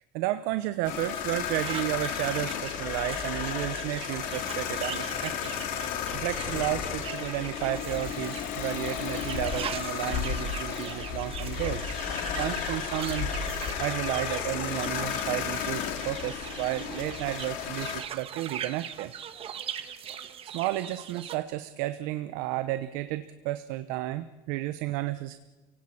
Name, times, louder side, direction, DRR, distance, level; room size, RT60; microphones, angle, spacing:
voice 1, 0.1-5.5 6.1-11.9 12.4-13.3 13.8-19.1 20.1-20.3 20.5-25.4, right 15 dB, 85° right, 11 dB, 1.0 m, -32 dB
sound 1, 0.8-18.0, left 8 dB, 65° left, 2.8 m, -33 dB
sound 2, 1.5-21.4, right 9 dB, 40° right, 1.5 m, -41 dB
29.5 x 17.5 x 8.8 m, 1.2 s
cardioid pair, 155°, 15 cm